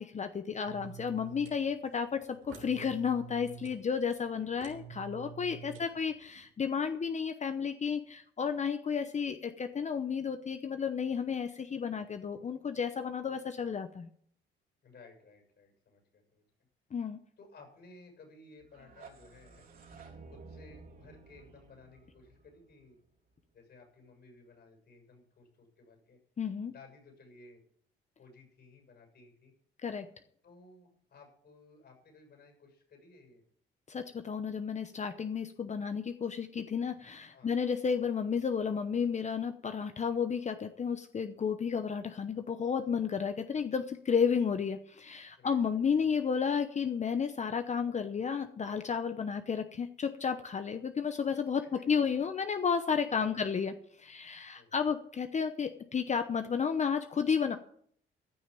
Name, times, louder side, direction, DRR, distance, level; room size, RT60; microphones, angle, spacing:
voice 1, 0.0-14.1 16.9-17.2 26.4-26.7 29.8-30.1 33.9-57.6, left 6 dB, 35° left, 9 dB, 0.8 m, -32 dB
sound 1, 0.6-6.5, right 9 dB, 90° right, 3.5 m, -49 dB
voice 2, 5.6-6.0 14.8-16.4 17.4-19.7 20.3-23.0 23.5-26.2 26.7-27.6 28.2-29.5 30.4-33.4 37.3-37.5 45.4-45.8 52.2-52.3 53.1-53.5 54.5-54.8, left 3 dB, 55° left, 3 dB, 7.2 m, -57 dB
sound 2, 18.6-23.5, right 4 dB, 50° right, 3.4 m, -54 dB
14.5 x 6.4 x 8.4 m, 0.64 s
cardioid pair, 90°, 20 cm